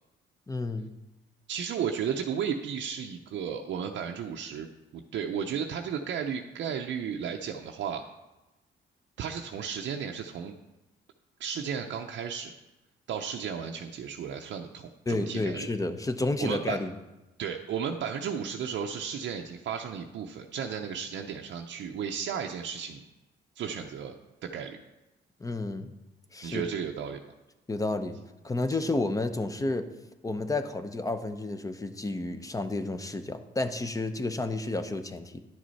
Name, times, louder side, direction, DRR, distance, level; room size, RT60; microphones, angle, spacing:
voice 1, 0.5-0.9 15.1-16.9 25.4-25.9 26.3-26.6 27.7-28.2 28.4-29.9 30.2-35.4, left 2 dB, 15° left, 9 dB, 0.7 m, -31 dB
voice 2, 1.5-8.0 9.2-10.5 11.4-12.5 13.1-15.7 16.4-16.8 17.4-23.0 23.6-24.1 24.4-24.8 26.4-27.2, right 7 dB, 65° right, 2 dB, 0.6 m, -34 dB
10.5 x 6.3 x 4.1 m, 1.0 s
cardioid pair, 90°, 20 cm